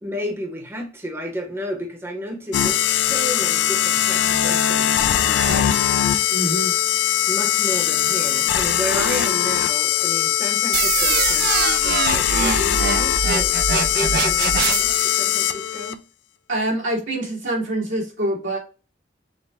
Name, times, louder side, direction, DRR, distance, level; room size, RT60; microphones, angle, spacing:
voice 1, 0.0-5.8 7.3-16.0, equal, 15° right, 0.9 m, -32 dB
sound 1, 2.5-15.9, left 11 dB, 70° left, 0.4 m, -20 dB
voice 2, 6.3-6.7 16.5-18.6, right 1 dB, 80° right, 2.1 m, -25 dB
sound 2, 10.7-15.1, right 7 dB, 55° right, 0.4 m, -23 dB
6.4 x 2.2 x 3.4 m
head